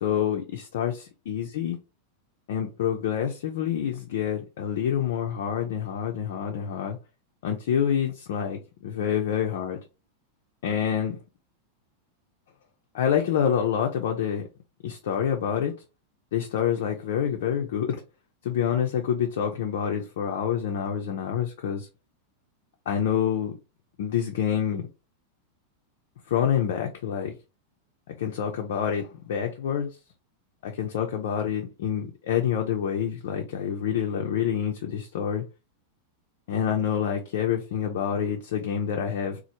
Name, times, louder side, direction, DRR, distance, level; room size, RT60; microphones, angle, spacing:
voice 1, 0.0-1.8 2.5-7.0 7.4-9.8 10.6-11.2 12.9-14.5 14.8-15.7 16.3-18.0 18.4-21.9 22.9-23.5 24.0-24.9 26.3-27.3 28.1-29.9 30.6-35.4 36.5-39.4, left 8 dB, 55° left, 0.4 m, -27 dB
3.0 x 2.0 x 2.8 m
figure-of-eight pair, 90°, 0 cm